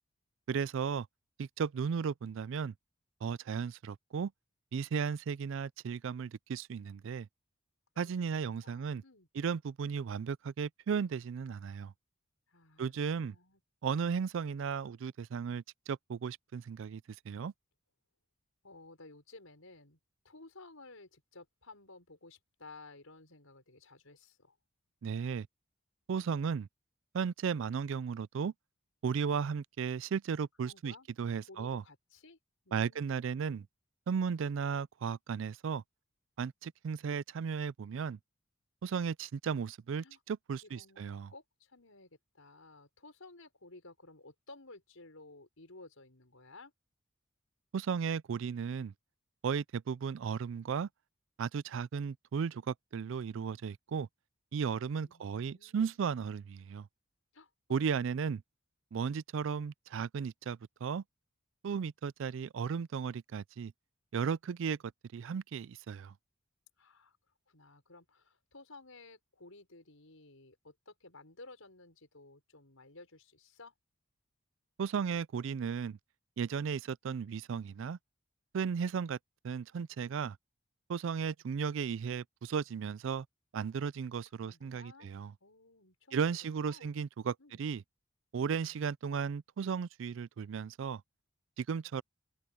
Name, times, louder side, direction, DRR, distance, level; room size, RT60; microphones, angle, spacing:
voice 1, 0.5-1.1 1.4-2.7 3.2-4.3 4.7-7.3 8.0-9.0 9.4-11.9 12.8-13.4 13.8-17.0 17.3-17.5 25.0-25.5 26.1-26.7 27.1-28.5 29.0-31.8 32.7-33.7 34.1-35.8 36.4-38.2 38.8-41.3 47.7-48.9 49.4-50.9 51.4-54.1 54.5-56.9 57.7-58.4 58.9-61.0 61.6-63.7 64.1-64.8 65.1-66.1 74.8-76.0 76.4-78.0 78.5-79.2 79.4-80.4 80.9-83.3 83.5-85.3 86.1-87.8 88.3-91.0 91.6-92.0, right 6 dB, 65° right, 0.4 m, -35 dB
voice 2, 8.6-9.3 12.5-13.6 18.6-20.0 20.2-24.6 29.1-29.2 30.6-31.1 31.4-32.4 40.0-40.2 40.6-41.0 41.3-46.7 55.0-56.1 57.3-57.5 57.8-57.9 66.8-67.2 67.5-73.7 84.4-85.1 85.4-86.4 86.7-87.0 87.4-87.6, left 3 dB, 80° left, 5.7 m, -55 dB
head